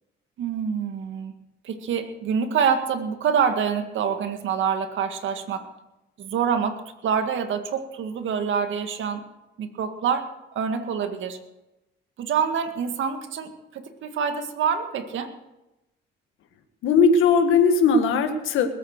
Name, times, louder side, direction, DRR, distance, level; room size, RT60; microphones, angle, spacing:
voice 1, 0.4-1.3 1.6-5.7 6.2-9.3 9.6-11.4 12.2-15.3, right 7 dB, 75° right, 7 dB, 1.9 m, -26 dB
voice 2, 16.8-18.7, left 4 dB, 85° left, 6 dB, 1.8 m, -18 dB
20.5 x 8.8 x 6.6 m, 0.95 s
cardioid pair, 90°, 20 cm